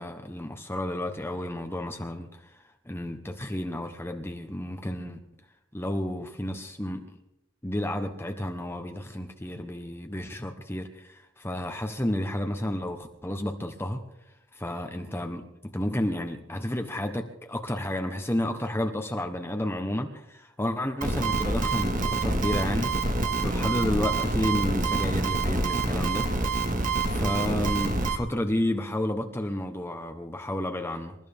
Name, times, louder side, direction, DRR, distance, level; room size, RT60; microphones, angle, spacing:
voice 1, 0.0-5.2 5.7-7.1 7.6-14.0 14.5-22.9 23.4-26.3 27.1-31.1, left 1 dB, 15° left, 4 dB, 1.1 m, -31 dB
sound 1, 21.0-28.2, right 3 dB, 45° right, 1.9 m, -27 dB
27.5 x 13.5 x 3.6 m, 0.84 s
head